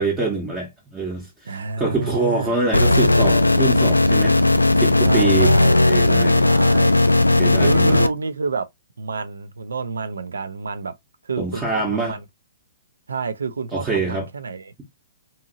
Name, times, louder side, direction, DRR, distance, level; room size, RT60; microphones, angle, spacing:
voice 1, 0.0-4.4 4.8-5.6 5.9-6.4 7.4-8.0 11.4-12.2 13.7-14.3, right 3 dB, 15° right, 0.8 m, -25 dB
voice 2, 1.5-2.5 5.0-5.8 6.4-7.0 7.6-8.7 9.0-10.9 11.2-12.2 13.1-14.7, right 4 dB, 70° right, 0.4 m, -28 dB
sound 1, 2.7-8.1, left 2 dB, 85° left, 0.3 m, -16 dB
2.8 x 2.7 x 2.5 m
figure-of-eight pair, 120°, 0 cm